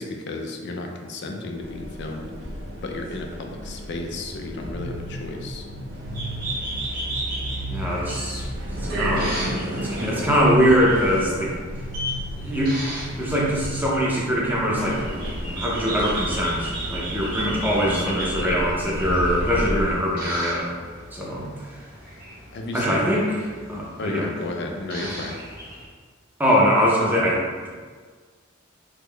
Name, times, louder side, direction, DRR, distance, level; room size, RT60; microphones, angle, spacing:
voice 1, 0.0-2.3 2.8-5.6 17.9-18.6 22.5-23.1 24.0-25.4, left 2 dB, 60° left, 2 dB, 0.4 m, -33 dB
sound 1, 1.5-19.9, equal, 65° right, 0.6 m, -33 dB
sound 2, 4.7-14.9, right 1 dB, 25° right, 1.0 m, -36 dB
sound 3, 5.9-25.8, right 1 dB, 45° right, 1.4 m, -36 dB
voice 2, 7.7-8.4 8.9-9.6 9.8-11.5 12.4-15.0 15.5-20.7 21.1-21.5 22.7-23.3 23.7-24.3 26.4-27.7, equal, 10° right, -5 dB, 0.6 m, -22 dB
3.6 x 2.0 x 3.3 m, 1.5 s
head